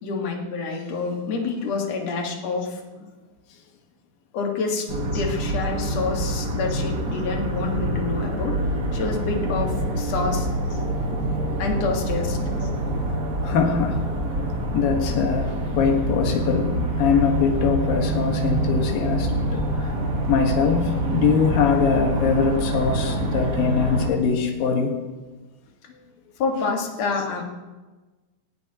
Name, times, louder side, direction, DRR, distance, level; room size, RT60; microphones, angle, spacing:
voice 1, 0.0-2.8 4.3-8.6 8.9-10.5 11.6-12.4 26.4-27.4, left 4 dB, 50° left, 1 dB, 2.6 m, -27 dB
sound 1, 4.9-24.1, right 1 dB, 65° right, 0.8 m, -26 dB
voice 2, 13.4-14.0 14.7-19.9 20.3-25.0, left 6 dB, 70° left, 2 dB, 3.2 m, -22 dB
19.0 x 18.0 x 3.0 m, 1.3 s
omnidirectional pair, 4.2 m